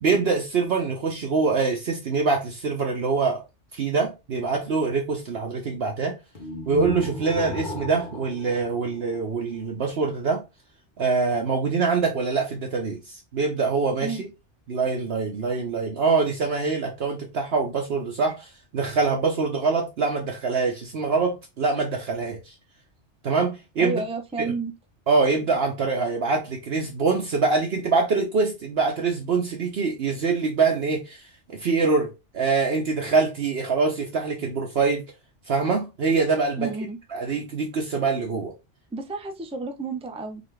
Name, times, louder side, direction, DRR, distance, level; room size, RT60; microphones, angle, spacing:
voice 1, 0.0-3.4 3.7-6.2 6.7-10.4 11.0-14.3 14.7-22.5 23.2-24.0 24.4-24.5 25.1-35.0 35.5-36.7 37.1-38.5, right 4 dB, 60° right, 1.0 m, -24 dB
sound 1, 6.4-9.5, left 1 dB, 45° left, 1.0 m, -34 dB
voice 2, 23.8-24.7 36.6-37.0 38.9-40.4, right 3 dB, 10° right, 0.4 m, -31 dB
4.0 x 3.5 x 3.3 m
omnidirectional pair, 1.2 m